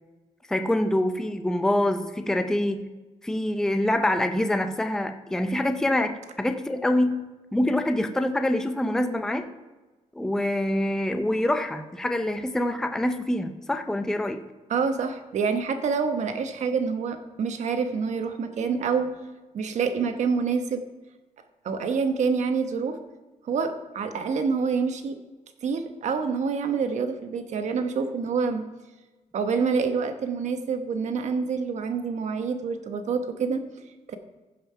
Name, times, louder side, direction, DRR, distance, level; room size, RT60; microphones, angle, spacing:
voice 1, 0.5-2.9 3.2-7.2 7.5-9.5 10.1-14.4, left 1 dB, 5° left, 7 dB, 0.5 m, -25 dB
voice 2, 14.7-19.1 19.5-20.8 21.6-23.0 23.5-25.2 25.6-28.6 29.3-33.6 34.1-34.2, right 5 dB, 60° right, 7 dB, 1.1 m, -27 dB
15.5 x 5.6 x 5.6 m, 1.2 s
wide cardioid pair, 170°, 13 cm